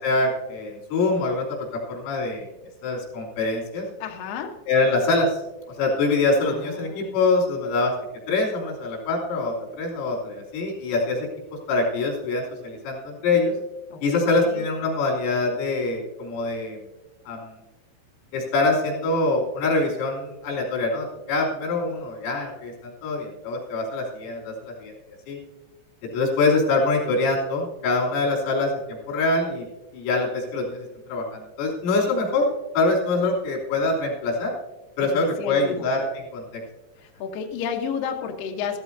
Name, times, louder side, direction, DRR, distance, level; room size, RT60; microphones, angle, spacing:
voice 1, 0.0-2.5 2.8-3.9 4.7-5.4 5.8-7.9 8.3-11.3 11.7-13.5 14.0-16.8 17.3-17.5 18.3-24.9 25.3-25.4 26.1-29.7 29.9-32.5 32.8-34.5 35.0-36.1 36.3-36.6, left 3 dB, 90° left, -2 dB, 5.7 m, -24 dB
voice 2, 4.0-4.6 6.4-7.2 13.9-14.7 35.0-35.9 37.0-38.8, left 6 dB, 70° left, 2 dB, 2.1 m, -32 dB
15.5 x 14.0 x 2.7 m, 1.1 s
omnidirectional pair, 5.6 m